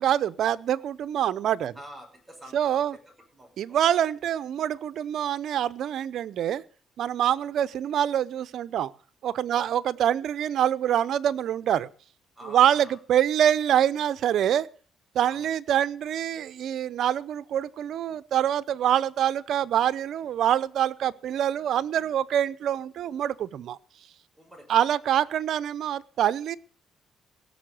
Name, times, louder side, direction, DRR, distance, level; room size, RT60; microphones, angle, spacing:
voice 1, 0.0-1.7 2.5-3.0 3.6-6.6 7.0-8.9 9.2-11.9 12.5-14.7 15.1-23.8 24.7-26.6, right 10 dB, 70° right, 0.6 m, -25 dB
voice 2, 1.7-2.8 3.3-3.8 7.3-7.4 9.5-9.7 12.4-13.0 15.3-15.5 24.3-24.7, equal, 10° right, 6.5 m, -47 dB
17.5 x 6.8 x 7.8 m
cardioid pair, 90°, 0 cm